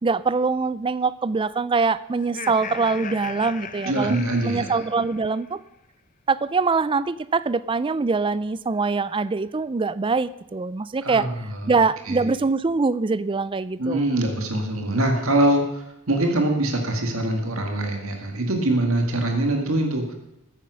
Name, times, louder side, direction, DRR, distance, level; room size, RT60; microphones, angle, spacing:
voice 1, 0.0-5.6 6.3-11.3 11.7-14.0, right 4 dB, 25° right, 17 dB, 0.4 m, -23 dB
Laughter, 2.2-5.4, left 6 dB, 35° left, 0.7 m, -37 dB
voice 2, 3.9-4.8 11.0-11.7 12.1-12.2 13.8-20.1, right 1 dB, 70° right, 3 dB, 2.0 m, -23 dB
14.5 x 10.0 x 6.3 m, 0.83 s
head